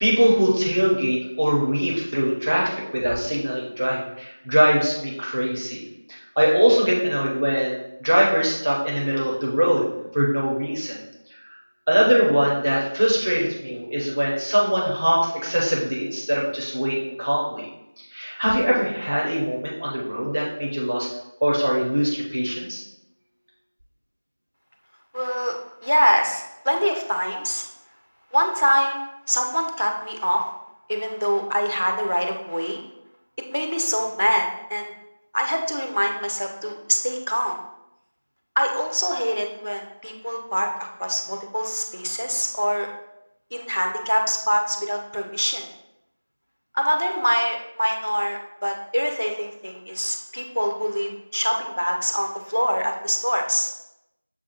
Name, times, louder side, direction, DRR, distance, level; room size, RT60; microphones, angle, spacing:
voice 1, 0.0-5.8 6.1-9.9 10.1-11.0 11.4-11.6 11.9-17.7 18.1-21.1 21.4-22.8, equal, 15° right, -4 dB, 0.5 m, -22 dB
voice 2, 25.1-27.7 28.3-29.0 29.3-30.5 30.9-32.8 33.5-34.9 35.3-37.6 38.6-42.9 43.5-45.6 46.7-53.7, equal, 90° left, 3 dB, 0.8 m, -24 dB
6.7 x 2.3 x 2.9 m, 0.85 s
figure-of-eight pair, 180°, 0 cm